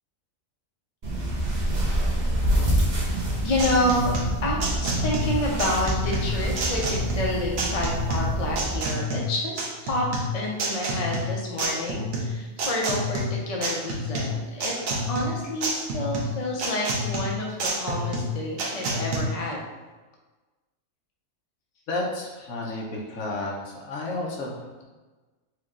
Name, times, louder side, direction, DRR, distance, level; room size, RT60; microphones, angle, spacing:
sound 1, 1.0-8.8, right 1 dB, 35° right, 1.0 m, -27 dB
sound 2, 3.2-19.2, equal, 80° right, 1.2 m, -29 dB
voice 1, 3.4-4.1 4.4-10.0 10.3-14.7 15.1-19.6 22.6-22.8, left 1 dB, 35° left, -2 dB, 0.6 m, -29 dB
voice 2, 21.9-24.8, left 2 dB, 85° left, -2 dB, 1.3 m, -32 dB
4.8 x 2.4 x 3.6 m, 1.3 s
omnidirectional pair, 1.4 m